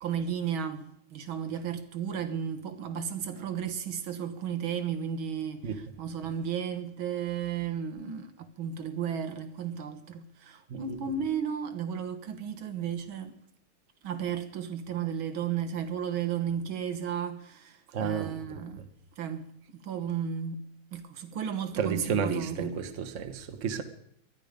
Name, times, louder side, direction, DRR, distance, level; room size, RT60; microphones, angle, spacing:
voice 1, 0.0-13.4 14.0-18.8 19.2-19.5 19.8-20.6 20.9-22.7, right 8 dB, 80° right, 2.1 m, -34 dB
voice 2, 17.9-18.4 18.8-18.9 21.8-23.8, right 6 dB, 40° right, 1.4 m, -32 dB
19.5 x 13.0 x 5.2 m
omnidirectional pair, 2.2 m